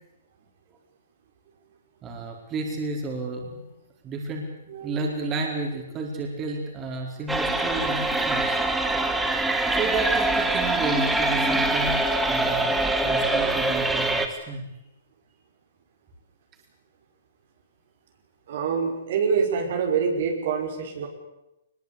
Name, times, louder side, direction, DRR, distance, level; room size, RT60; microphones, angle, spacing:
voice 1, 2.0-3.6 4.0-4.5 4.8-8.6 9.1-9.3 9.7-14.6, right 3 dB, 25° right, 1 dB, 4.7 m, -32 dB
sound 1, 7.3-14.3, right 2 dB, 5° right, 1.9 m, -24 dB
voice 2, 18.5-21.1, right 6 dB, 60° right, 2 dB, 5.3 m, -25 dB
21.5 x 21.0 x 8.6 m, 0.91 s
hypercardioid pair, 145°, 0 cm